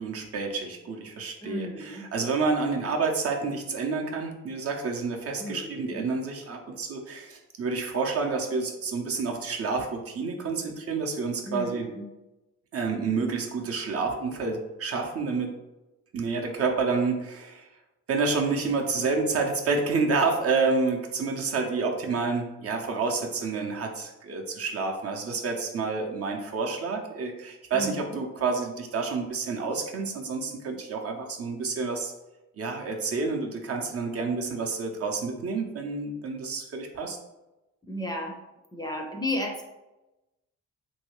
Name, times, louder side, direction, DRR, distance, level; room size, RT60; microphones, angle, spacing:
voice 1, 0.0-11.9 12.7-15.5 16.1-17.7 18.1-32.1 32.6-37.2, right 4 dB, 50° right, 2 dB, 0.6 m, -29 dB
voice 2, 1.4-2.1 5.4-6.1 11.5-12.1 27.7-28.2 37.9-38.4 38.7-39.6, left 1 dB, 15° left, 0 dB, 0.5 m, -33 dB
3.1 x 2.7 x 3.0 m, 1.0 s
cardioid pair, 90°, 30 cm